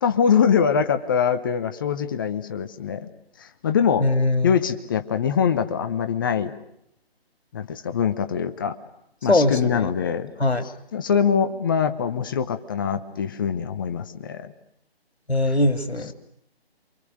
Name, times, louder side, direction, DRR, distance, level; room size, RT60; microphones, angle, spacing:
voice 1, 0.0-3.1 3.4-4.0 4.4-6.5 7.5-8.8 9.2-10.3 10.9-14.5, left 7 dB, 20° left, 9 dB, 0.9 m, -23 dB
voice 2, 4.0-4.5 9.3-9.9 10.4-10.7 15.3-16.1, left 2 dB, 85° left, 8 dB, 2.5 m, -21 dB
28.0 x 25.5 x 6.6 m, 0.76 s
figure-of-eight pair, 145°, 31 cm